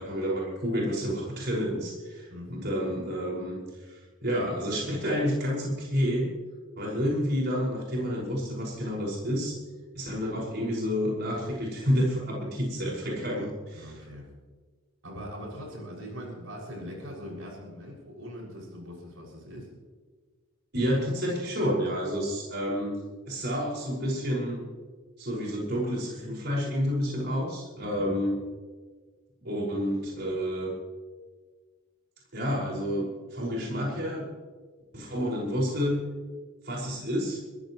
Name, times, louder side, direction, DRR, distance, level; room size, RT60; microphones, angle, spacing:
voice 1, 0.0-6.3 6.8-9.6 9.9-14.0 20.7-23.0 23.3-24.6 25.2-28.4 29.4-30.7 32.3-34.3 34.9-36.0 36.6-37.4, equal, 55° right, -4 dB, 5.6 m, -29 dB
voice 2, 13.8-14.3 15.0-19.7 27.8-28.2, equal, 80° right, -2 dB, 6.4 m, -41 dB
23.0 x 15.5 x 3.1 m, 1.4 s
head